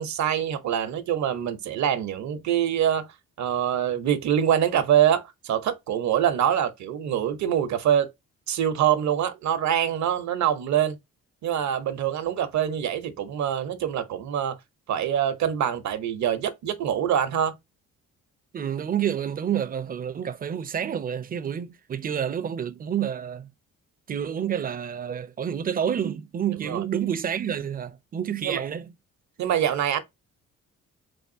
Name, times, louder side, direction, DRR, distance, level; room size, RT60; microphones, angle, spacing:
voice 1, 0.0-3.1 3.4-8.1 8.5-11.0 11.4-14.6 14.9-17.5 26.6-26.8 28.4-28.6 29.4-30.0, right 9 dB, 65° right, 0.8 m, -24 dB
voice 2, 18.5-23.5 24.1-28.9, right 9 dB, 30° right, 0.5 m, -29 dB
3.6 x 3.5 x 2.6 m
cardioid pair, 90°, 30 cm